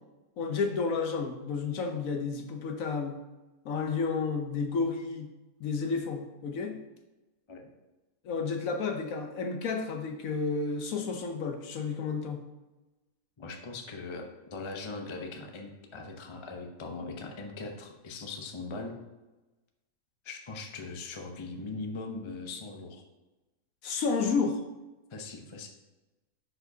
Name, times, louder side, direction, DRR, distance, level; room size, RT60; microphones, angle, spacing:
voice 1, 0.4-3.2 3.6-5.3 5.6-6.8 8.2-12.4 23.8-24.6, left 4 dB, 65° left, 4 dB, 1.1 m, -31 dB
voice 2, 13.4-18.9 20.2-23.0 25.1-25.7, left 3 dB, 35° left, 3 dB, 0.5 m, -40 dB
10.0 x 4.8 x 2.7 m, 1.1 s
omnidirectional pair, 1.6 m